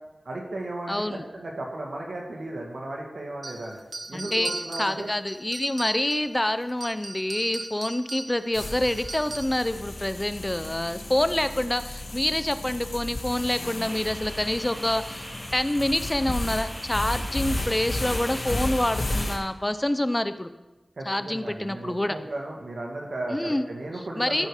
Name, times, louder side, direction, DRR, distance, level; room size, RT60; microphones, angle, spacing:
voice 1, 0.3-3.8 4.1-5.1 21.0-24.5, right 2 dB, 75° right, -1 dB, 2.0 m, -35 dB
voice 2, 0.9-1.2 4.1-4.5 4.8-20.5 21.1-22.2 23.3-23.7 24.2-24.5, left 1 dB, 20° left, 11 dB, 0.6 m, -27 dB
sound 1, 3.4-6.3 6.7-9.7, right 2 dB, 50° right, 0.7 m, -38 dB
sound 2, 8.5-19.4, left 1 dB, 55° left, 1.6 m, -33 dB
sound 3, 13.8-18.9, right 1 dB, 30° right, 1.9 m, -42 dB
15.0 x 5.1 x 4.9 m, 1.1 s
wide cardioid pair, 65°, 0 cm